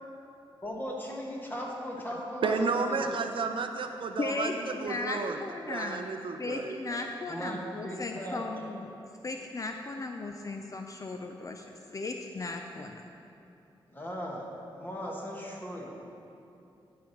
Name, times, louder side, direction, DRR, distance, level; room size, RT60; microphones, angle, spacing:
voice 1, 0.6-3.0 7.3-8.4 13.9-16.0, equal, 20° left, -2 dB, 1.6 m, -37 dB
voice 2, 2.4-5.4 5.7-7.1, right 4 dB, 65° right, 6 dB, 0.6 m, -32 dB
voice 3, 4.2-6.1 6.4-8.9 9.2-11.6 11.9-13.0, left 3 dB, 35° left, 4 dB, 0.4 m, -36 dB
11.0 x 5.9 x 4.5 m, 2.7 s
wide cardioid pair, 95°, 9 cm